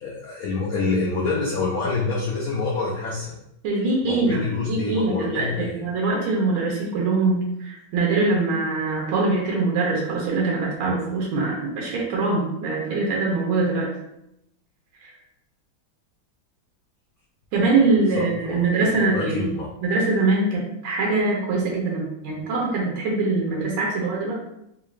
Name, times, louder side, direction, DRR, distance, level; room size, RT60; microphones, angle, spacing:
voice 1, 0.0-3.3 4.0-5.8 17.5-17.6 18.1-19.7, left 3 dB, 85° left, -3 dB, 0.8 m, -27 dB
voice 2, 3.6-13.9 15.0-15.1 17.5-19.5 19.8-24.3, right 3 dB, 80° right, -2 dB, 1.5 m, -23 dB
3.7 x 2.4 x 3.1 m, 0.81 s
omnidirectional pair, 2.2 m